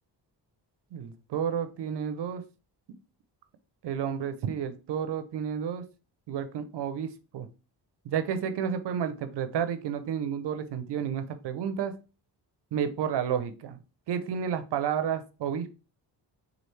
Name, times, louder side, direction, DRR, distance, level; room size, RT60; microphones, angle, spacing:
voice 1, 0.9-2.4 3.8-5.8 6.3-7.5 8.1-11.9 12.7-13.8 14.1-15.7, right 8 dB, 70° right, 10 dB, 0.6 m, -31 dB
4.4 x 2.4 x 3.2 m, 0.32 s
cardioid pair, 85°, 43 cm